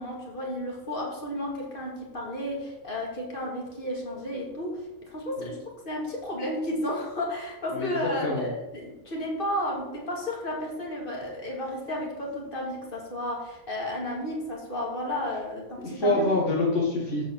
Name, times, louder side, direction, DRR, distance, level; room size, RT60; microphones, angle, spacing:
voice 1, 0.0-16.3, left 1 dB, 45° left, -2 dB, 2.8 m, -32 dB
voice 2, 7.7-8.5 15.8-17.2, left 2 dB, 70° left, -3 dB, 2.1 m, -26 dB
13.0 x 4.6 x 7.1 m, 1.0 s
omnidirectional pair, 1.3 m